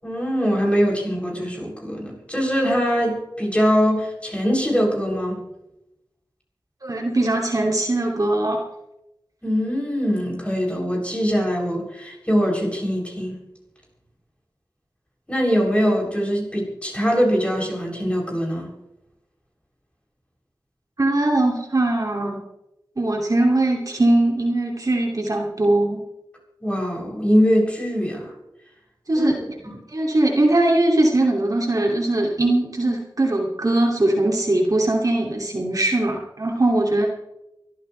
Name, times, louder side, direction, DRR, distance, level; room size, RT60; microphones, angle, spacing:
voice 1, 0.0-5.4 9.4-13.4 15.3-18.7 26.6-28.3 29.1-29.8, equal, 15° left, -3 dB, 7.6 m, -22 dB
voice 2, 6.8-8.6 21.0-22.4 23.0-26.0 29.1-29.4 29.9-37.1, right 2 dB, 50° right, 0 dB, 2.7 m, -20 dB
24.5 x 14.0 x 3.4 m, 0.90 s
wide cardioid pair, 70°, 8 cm